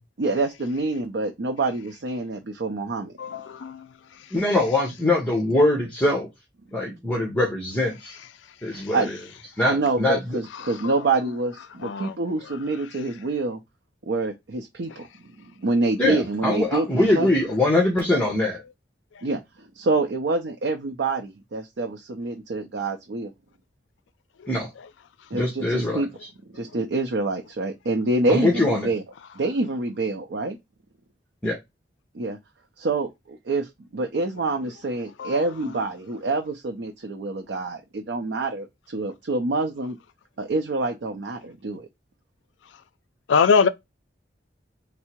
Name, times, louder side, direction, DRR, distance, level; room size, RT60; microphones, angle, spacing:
voice 1, 0.2-3.1 8.7-9.1 9.6-13.6 14.1-15.1 15.6-17.3 19.2-19.4 19.8-23.3 25.3-26.1 26.5-29.0 29.4-30.6 32.1-32.4 32.8-40.0 40.4-41.9, right 3 dB, 70° right, 0.5 m, -26 dB
voice 2, 3.2-3.9 10.6-10.9 11.8-12.2 35.2-35.8 43.3-43.7, left 5 dB, 90° left, 0.4 m, -23 dB
voice 3, 4.3-6.3 6.7-8.2 8.6-9.1 9.6-10.4 16.0-18.6 24.5-24.7 25.3-26.0 28.3-28.9 31.4-31.6, left 1 dB, 10° left, 0.9 m, -22 dB
3.5 x 2.0 x 4.3 m
head